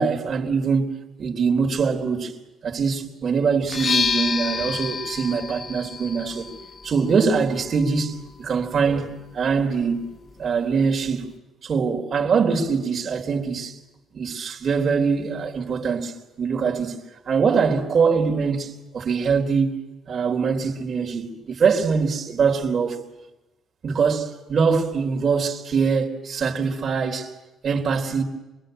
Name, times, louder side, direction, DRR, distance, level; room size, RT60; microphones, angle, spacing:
voice 1, 0.0-6.5 6.8-10.1 10.4-11.3 11.6-13.8 14.1-17.0 17.3-19.7 20.1-23.0 23.8-27.3 27.6-28.2, right 5 dB, 40° right, 3.7 m, -23 dB
sound 1, 3.6-11.4, left 5 dB, 35° left, 1.3 m, -31 dB
26.5 x 22.5 x 9.0 m
cardioid pair, 135°, 0 cm